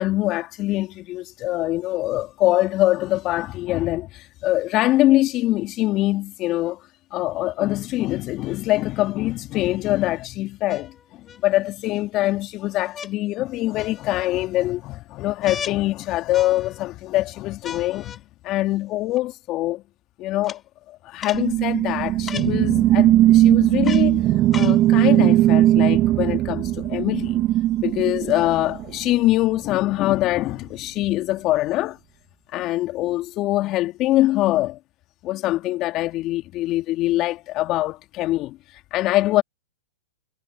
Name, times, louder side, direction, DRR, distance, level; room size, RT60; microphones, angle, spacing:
voice 1, 0.0-6.8 7.1-19.8 20.2-20.6 20.9-27.4 27.8-32.0 32.5-34.8 35.2-38.6 38.9-39.4, left 16 dB, 40° left, 3.0 m, -23 dB
sound 1, 9.0-9.1 10.7-11.4 12.9-13.1 13.8-14.3 15.4-15.8 16.3-16.9 17.6-18.2 19.1-19.2 20.4-20.6 21.2-21.5 22.3-22.5 23.8-24.1 24.5-24.8 25.6-25.7, left 7 dB, 20° left, 4.5 m, -36 dB
sound 2, 21.3-29.1, right 14 dB, 35° right, 2.3 m, -18 dB
hypercardioid pair, 115°, 0 cm